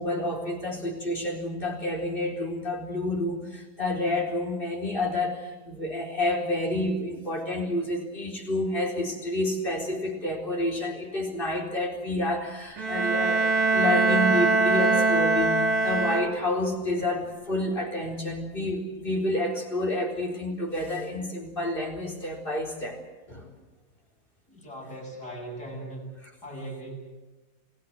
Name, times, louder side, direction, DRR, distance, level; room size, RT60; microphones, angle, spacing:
voice 1, 0.0-23.0 23.3-23.5, left 1 dB, 30° left, 0 dB, 4.5 m, -29 dB
Bowed string instrument, 12.8-16.7, right 3 dB, 65° right, 2.1 m, -23 dB
voice 2, 24.5-26.1 26.4-26.9, right 1 dB, 75° left, -2 dB, 8.3 m, -39 dB
28.0 x 17.0 x 7.7 m, 1.2 s
omnidirectional pair, 1.8 m